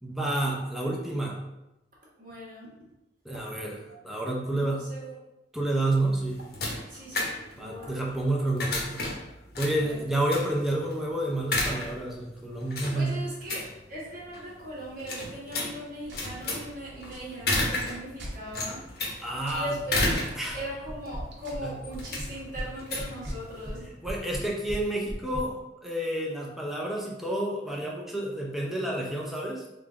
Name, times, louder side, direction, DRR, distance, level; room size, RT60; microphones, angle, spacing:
voice 1, 0.0-1.4 3.2-4.9 5.5-6.4 7.6-9.1 9.6-13.2 19.2-19.8 20.4-20.6 21.6-21.8 24.0-29.6, right 1 dB, ahead, -3 dB, 0.6 m, -29 dB
voice 2, 2.2-2.7 4.6-5.1 6.9-8.4 9.7-9.9 12.9-18.8 19.5-20.0 20.5-23.9, right 1 dB, 50° right, -5 dB, 1.2 m, -39 dB
sound 1, 5.9-23.9, left 2 dB, 55° left, 0.8 m, -34 dB
sound 2, 16.0-24.1, equal, 75° right, 0.8 m, -48 dB
sound 3, 20.1-20.6 20.9-21.6 21.9-22.7 23.0-25.5, equal, 25° right, 1.0 m, -36 dB
3.6 x 2.3 x 3.7 m, 0.92 s
head